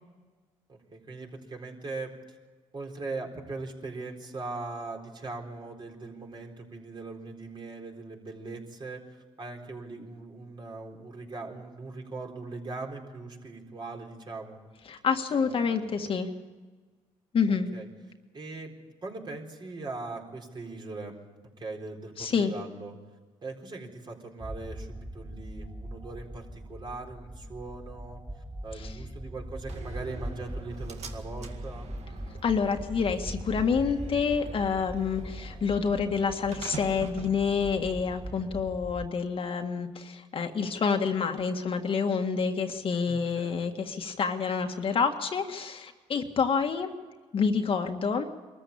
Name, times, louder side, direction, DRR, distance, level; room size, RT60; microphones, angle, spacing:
voice 1, 0.7-2.4 2.7-14.6 15.3-15.9 17.7-17.9 18.3-18.7 19.0-21.2 21.6-23.0 23.4-28.2 28.6-31.9 43.1-43.6, right 3 dB, 40° right, 2 dB, 4.2 m, -40 dB
voice 2, 14.9-16.3 17.3-17.7 22.2-22.5 32.4-46.9 47.3-48.3, left 5 dB, 50° left, 5 dB, 1.8 m, -28 dB
sound 1, 24.4-39.1, right 1 dB, 10° right, 3.2 m, -41 dB
Slam, 29.7-38.7, right 6 dB, 65° right, 2.1 m, -47 dB
22.5 x 14.0 x 8.7 m, 1.4 s
cardioid pair, 80°, 12 cm